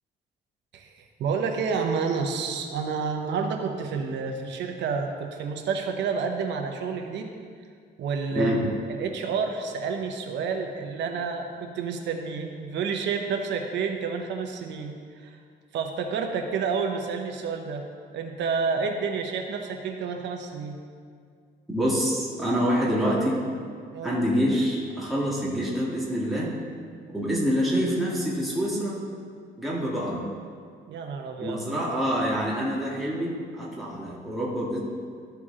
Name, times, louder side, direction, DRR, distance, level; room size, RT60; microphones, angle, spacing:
voice 1, 0.7-7.3 8.0-8.6 8.9-15.4 15.7-17.8 18.1-20.8 23.9-24.2 30.9-31.6, right 5 dB, 80° right, 4 dB, 0.9 m, -29 dB
voice 2, 21.7-23.4 24.0-26.5 27.1-29.0 29.6-30.2 31.4-34.8, equal, ahead, -6 dB, 1.8 m, -26 dB
12.5 x 4.6 x 3.7 m, 2.1 s
cardioid pair, 135°, 18 cm